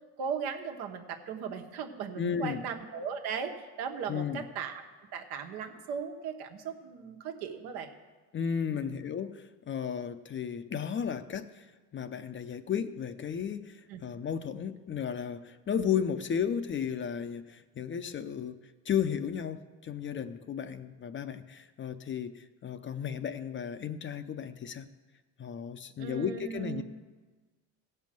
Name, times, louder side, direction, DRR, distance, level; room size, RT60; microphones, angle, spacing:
voice 1, 0.2-4.8 5.1-7.9 8.7-8.9 13.9-14.0 26.0-26.8, right 6 dB, 75° right, 5 dB, 1.4 m, -37 dB
voice 2, 2.2-2.6 4.1-4.4 8.3-11.7 11.9-18.6 18.9-24.9 25.4-26.8, left 8 dB, 30° left, 11 dB, 0.6 m, -34 dB
16.0 x 5.5 x 7.6 m, 1.3 s
supercardioid pair, 105°, 38 cm